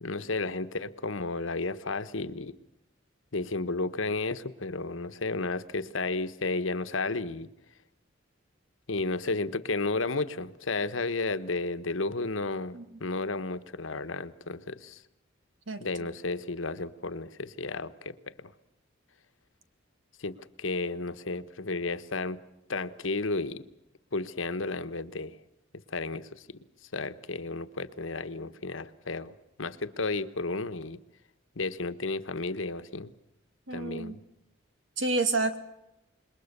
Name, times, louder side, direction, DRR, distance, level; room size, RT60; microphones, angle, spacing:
voice 1, 0.0-2.5 3.3-7.5 8.9-15.0 15.8-18.5 20.2-22.4 22.7-23.6 24.1-25.4 25.9-26.5 26.9-31.0 31.6-33.1 33.7-34.2, left 3 dB, 80° left, 12 dB, 1.2 m, -33 dB
voice 2, 33.7-34.2 35.0-35.6, right 3 dB, 75° right, 9 dB, 2.5 m, -29 dB
27.0 x 21.5 x 6.8 m, 0.89 s
head